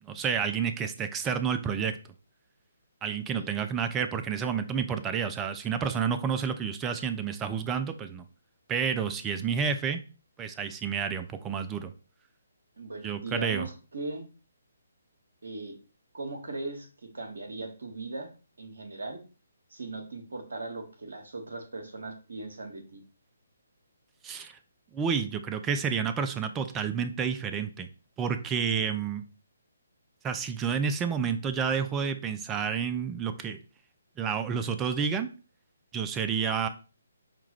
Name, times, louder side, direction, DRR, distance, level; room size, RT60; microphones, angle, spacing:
voice 1, 0.0-2.0 3.0-8.3 8.7-10.0 10.4-11.9 13.0-13.7 24.2-24.6 24.9-27.9 28.2-29.2 30.2-33.6 34.2-35.3 35.9-36.7, right 6 dB, 15° right, 9 dB, 0.4 m, -30 dB
voice 2, 3.0-3.5 12.8-14.2 15.4-15.7 16.1-18.3 18.6-19.2 19.7-23.0, right 3 dB, 60° right, 5 dB, 1.1 m, -39 dB
5.8 x 2.4 x 3.0 m, 0.35 s
figure-of-eight pair, 140°, 0 cm